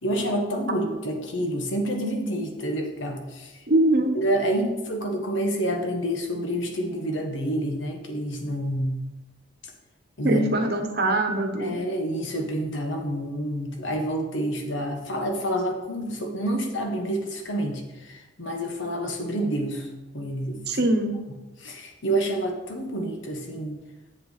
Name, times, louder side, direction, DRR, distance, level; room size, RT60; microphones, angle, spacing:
voice 1, 0.0-3.6 4.1-9.0 10.2-10.5 11.6-19.9 20.1-20.9 21.6-23.8, right 1 dB, 70° left, 3 dB, 1.3 m, -28 dB
voice 2, 3.7-4.1 10.2-11.8 20.7-21.1, right 1 dB, 50° right, 4 dB, 1.1 m, -22 dB
7.7 x 7.6 x 4.1 m, 1.1 s
head